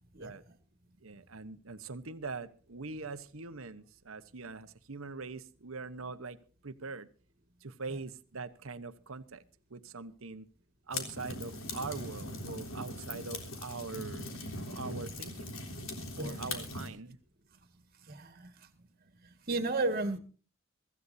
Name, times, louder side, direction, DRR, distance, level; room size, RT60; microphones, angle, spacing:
voice 1, 1.0-6.4 6.6-7.1 7.6-9.4 9.7-10.4 10.9-14.3 14.7-15.5 16.2-17.1, right 4 dB, 75° right, 12 dB, 1.1 m, -42 dB
sound 1, 10.9-16.9, left 2 dB, 75° left, 3.5 m, -40 dB
voice 2, 18.1-18.5 19.5-20.2, right 2 dB, 45° right, 8 dB, 2.0 m, -32 dB
24.0 x 14.5 x 2.7 m, 0.37 s
head